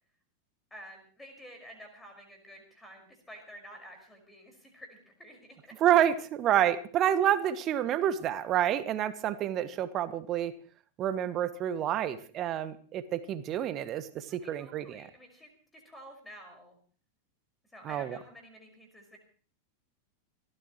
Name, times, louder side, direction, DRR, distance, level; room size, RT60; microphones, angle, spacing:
voice 1, 0.7-5.7 14.3-16.8 17.7-19.2, equal, 10° left, 4 dB, 5.4 m, -50 dB
voice 2, 5.8-10.5 11.0-15.1 17.8-18.2, right 11 dB, 35° right, 14 dB, 1.2 m, -28 dB
28.5 x 13.5 x 3.1 m, 0.42 s
figure-of-eight pair, 90°, 0 cm